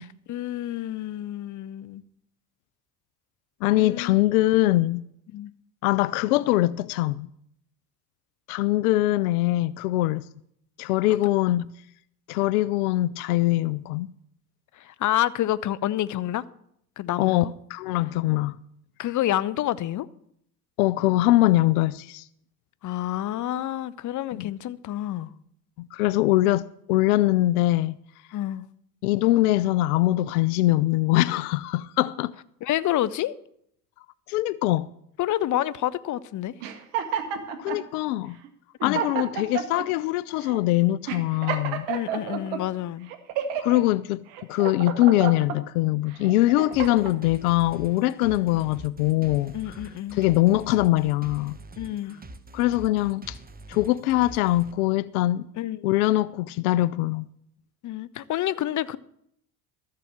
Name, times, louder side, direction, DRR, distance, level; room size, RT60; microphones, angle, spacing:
voice 1, 0.0-2.0 3.7-4.2 5.3-5.5 11.1-11.3 14.8-16.4 17.0-17.5 19.0-20.1 22.8-25.3 28.3-28.6 32.6-33.3 35.2-36.5 38.8-39.0 41.9-43.1 48.3-48.6 49.5-50.2 51.8-52.2 55.5-55.9 57.8-59.0, left 13 dB, 45° left, 0.7 m, -28 dB
voice 2, 3.6-5.0 5.8-7.3 8.5-10.3 10.8-11.7 12.3-14.1 17.2-18.6 20.8-22.2 24.3-24.5 25.8-28.0 29.0-32.3 34.3-34.9 37.6-38.4 38.8-41.9 43.6-44.2 44.5-49.7 50.1-51.6 52.5-53.4 53.7-55.4 55.8-57.3, left 16 dB, 80° left, 0.6 m, -22 dB
sound 1, 36.6-37.8 38.4-38.5 38.8-39.9 40.4-40.6 41.1-42.6 43.1-43.8 44.3-45.6 46.1-47.2, right 8 dB, 75° right, 1.7 m, -30 dB
sound 2, 46.7-54.7, right 2 dB, 20° right, 1.2 m, -44 dB
13.5 x 7.5 x 7.3 m
hypercardioid pair, 75°, 43 cm